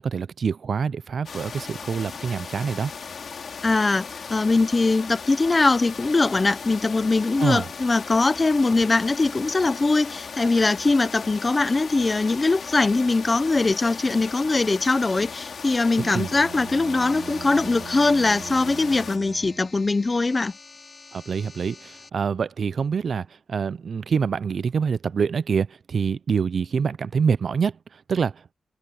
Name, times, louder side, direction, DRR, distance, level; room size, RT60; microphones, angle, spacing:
voice 1, 0.0-2.9 7.4-7.7 16.0-16.3 21.1-28.5, right 6 dB, 55° right, 0.4 m, -26 dB
sound 1, 1.3-19.2, left 5 dB, 60° left, 3.0 m, -37 dB
voice 2, 3.6-20.5, left 3 dB, 25° left, 0.7 m, -21 dB
Bowed string instrument, 16.0-19.9, right 7 dB, 85° right, 2.0 m, -40 dB
sound 2, 17.0-22.1, left 4 dB, 40° left, 2.9 m, -48 dB
wide cardioid pair, 180°, 0 cm